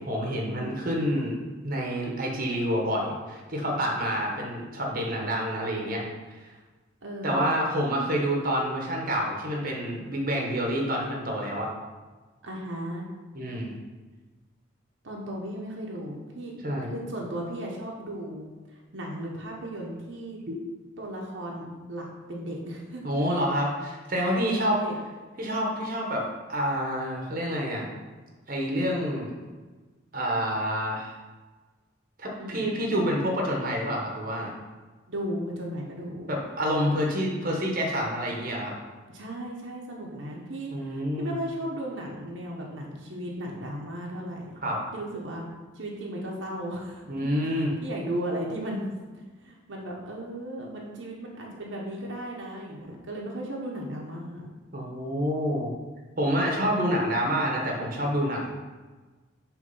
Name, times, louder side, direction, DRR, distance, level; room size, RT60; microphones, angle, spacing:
voice 1, 0.0-1.4 1.6-6.0 6.3-6.4 7.2-11.7 13.3-13.7 16.6-16.9 20.5-20.6 23.0-24.8 25.4-27.8 28.5-29.3 30.1-31.1 32.2-34.5 36.3-38.7 40.7-41.3 44.6-44.8 47.1-47.7 54.7-55.7 56.2-58.5, equal, 45° right, -1 dB, 1.1 m, -28 dB
voice 2, 7.0-7.5 12.4-13.0 15.0-16.5 16.9-18.5 18.9-20.4 21.0-23.0 24.3-24.9 32.4-32.7 35.1-36.3 39.1-44.4 44.9-45.5 45.7-48.8 49.1-54.5, right 1 dB, 70° right, -2 dB, 1.0 m, -36 dB
6.4 x 3.4 x 5.4 m, 1.3 s
head